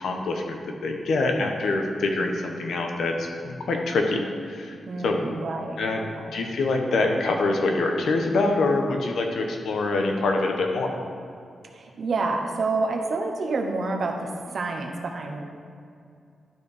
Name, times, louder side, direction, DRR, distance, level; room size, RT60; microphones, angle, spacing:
voice 1, 0.0-4.8 5.0-5.2 5.8-6.0 6.3-10.9, left 3 dB, 85° left, 3 dB, 1.0 m, -25 dB
voice 2, 4.8-6.3 11.7-15.4, right 3 dB, 60° right, 2 dB, 1.0 m, -28 dB
11.5 x 4.7 x 5.0 m, 2.4 s
wide cardioid pair, 110°, 0 cm